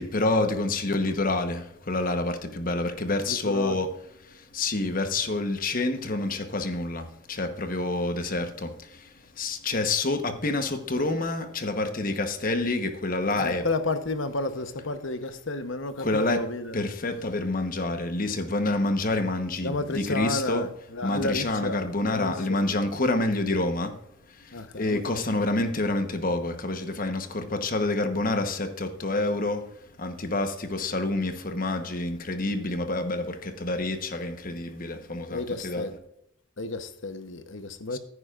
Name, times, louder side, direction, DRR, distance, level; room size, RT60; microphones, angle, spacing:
voice 1, 0.0-3.9 4.2-13.6 16.0-16.4 16.7-20.7 21.0-24.0 24.3-35.9 37.9-38.0, left 2 dB, 40° left, 1.1 m, -28 dB
voice 2, 3.3-3.8 13.4-16.8 19.6-21.8 22.1-22.6 24.5-25.4 35.3-35.9 36.6-38.0, left 2 dB, 60° left, 1.0 m, -32 dB
14.5 x 9.8 x 2.5 m
head